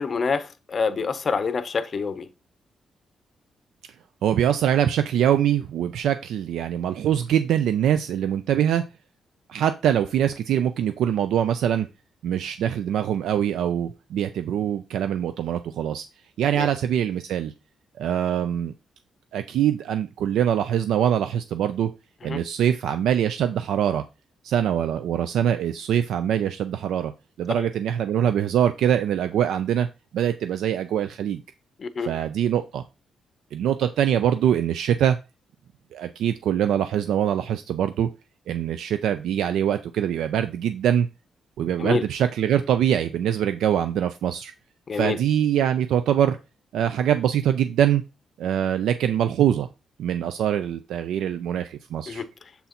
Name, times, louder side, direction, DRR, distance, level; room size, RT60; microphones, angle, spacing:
voice 1, 0.0-2.3 16.5-16.7 22.2-22.4 27.6-27.7 31.8-32.1 41.8-42.0 44.9-45.2 52.1-52.3, left 5 dB, 30° left, 0.6 m, -26 dB
voice 2, 4.2-8.8 9.5-11.9 12.2-16.0 16.4-17.5 18.0-18.7 19.3-21.9 22.2-24.0 24.4-27.1 27.4-29.9 30.1-31.4 32.0-32.8 33.5-35.2 35.9-38.1 38.5-41.1 41.6-44.5 44.9-46.4 46.7-48.0 48.4-49.7 50.0-52.2, right 10 dB, 85° right, 0.4 m, -23 dB
7.0 x 3.9 x 4.2 m
wide cardioid pair, 180°, 0 cm